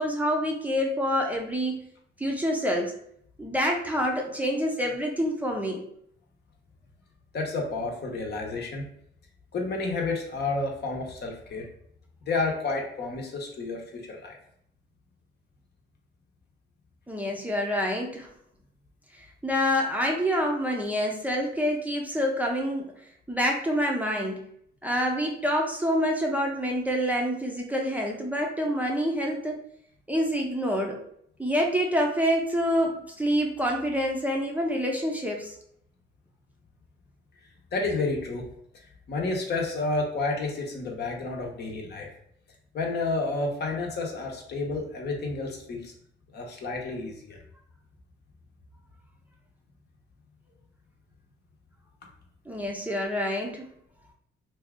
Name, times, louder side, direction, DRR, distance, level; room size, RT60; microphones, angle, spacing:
voice 1, 0.0-1.8 2.2-2.9 3.4-5.8 17.1-18.3 19.2-22.9 23.3-24.4 24.8-29.6 30.1-31.0 31.4-35.5 52.5-53.7, equal, 10° right, 0 dB, 0.5 m, -27 dB
voice 2, 7.3-8.8 9.5-11.7 12.2-14.4 37.7-38.5 38.7-42.1 42.7-45.9 46.3-47.4, left 3 dB, 55° left, 0 dB, 0.8 m, -30 dB
2.7 x 2.3 x 3.5 m, 0.68 s
cardioid pair, 90°, 20 cm